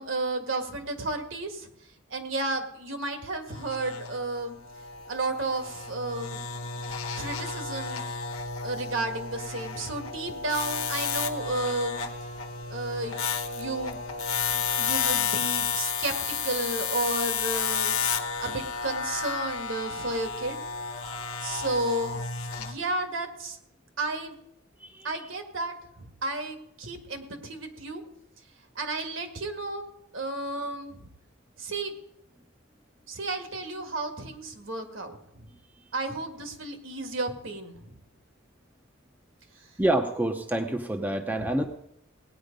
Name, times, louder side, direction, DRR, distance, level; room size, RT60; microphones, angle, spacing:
voice 1, 0.0-1.7 2.1-4.5 5.1-6.4 7.1-8.0 8.6-12.0 12.7-13.2 13.5-14.0 14.5-16.2 16.4-18.0 18.4-20.6 21.4-22.2 22.6-23.6 24.0-24.4 25.0-28.0 28.7-29.8 30.1-31.1 31.6-31.9 33.1-35.2 35.9-37.9 41.4-41.5, right 2 dB, 65° right, 6 dB, 1.7 m, -32 dB
sound 1, 3.5-22.7, left 6 dB, 85° left, 1.2 m, -32 dB
voice 2, 24.8-25.1 39.8-41.7, right 1 dB, 10° right, 4 dB, 0.7 m, -27 dB
18.0 x 9.3 x 5.2 m, 0.77 s
head